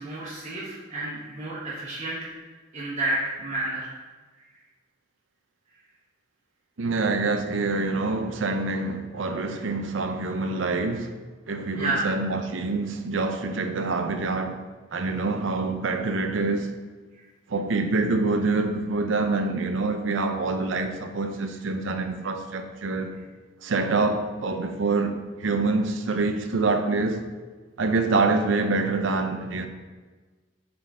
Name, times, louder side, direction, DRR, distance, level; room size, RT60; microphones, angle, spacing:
voice 1, 0.0-2.3 2.7-3.9 4.4-4.5 11.7-12.1, right 2 dB, 35° right, 1.1 m, -30 dB
voice 2, 6.8-11.1 11.5-14.6 14.9-16.7 17.5-23.1 23.6-27.2 27.8-29.7, right 3 dB, 80° right, 0.6 m, -26 dB
7.6 x 3.9 x 3.6 m
head